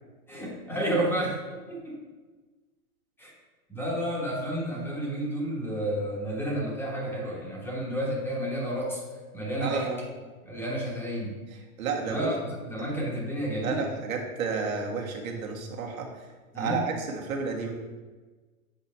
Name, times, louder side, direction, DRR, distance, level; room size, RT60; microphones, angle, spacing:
voice 1, 0.3-1.4 1.7-2.0 3.2-3.3 3.7-9.0 9.3-9.9 10.5-11.4 12.0-13.9 16.5-16.8, right 1 dB, 5° left, -4 dB, 1.2 m, -31 dB
voice 2, 9.6-10.0 11.8-12.3 12.8-12.9 13.6-16.1 16.5-17.7, right 5 dB, 70° right, 0 dB, 1.6 m, -31 dB
7.8 x 4.3 x 4.3 m, 1.3 s
hypercardioid pair, 150°, 43 cm